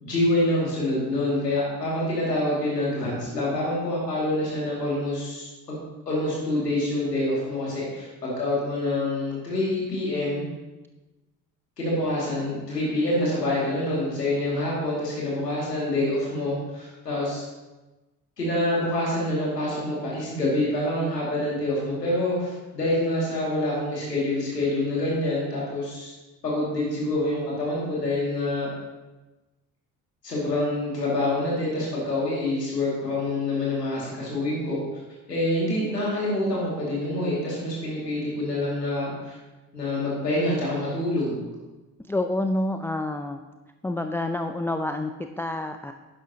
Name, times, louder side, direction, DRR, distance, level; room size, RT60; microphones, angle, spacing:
voice 1, 0.0-5.8 6.1-10.4 11.8-17.4 18.4-26.1 26.4-28.7 30.2-34.8 35.3-39.4 39.7-41.4, left 1 dB, 90° left, -5 dB, 2.4 m, -26 dB
voice 2, 42.1-43.4 43.8-45.9, left 1 dB, 5° left, 6 dB, 0.5 m, -28 dB
11.5 x 10.5 x 2.9 m, 1.1 s
figure-of-eight pair, 50°, 47 cm